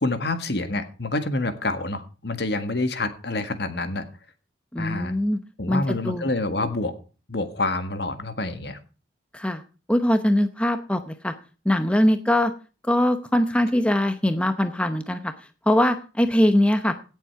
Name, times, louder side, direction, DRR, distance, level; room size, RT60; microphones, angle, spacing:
voice 1, 0.0-4.0 4.8-5.1 5.6-6.9 7.3-8.8, left 2 dB, 60° left, 9 dB, 1.6 m, -27 dB
voice 2, 4.7-5.4 5.7-6.3 9.3-9.6 9.9-11.3 11.6-12.5 12.8-16.9, left 1 dB, 5° left, 9 dB, 0.8 m, -22 dB
17.0 x 7.5 x 4.6 m, 0.35 s
head